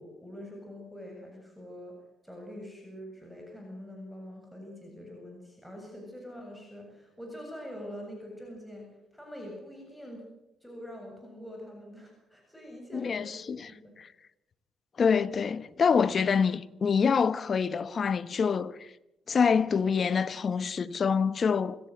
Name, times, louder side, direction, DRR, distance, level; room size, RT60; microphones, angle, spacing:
voice 1, 0.0-1.9 2.2-8.9 9.1-10.2 10.6-13.9, equal, ahead, 7.5 m, -44 dB
voice 2, 12.9-13.7 14.0-14.1 15.0-18.9 19.3-21.8, left 6 dB, 45° left, 1.1 m, -26 dB
26.0 x 16.5 x 7.8 m
cardioid pair, 90°, 0 cm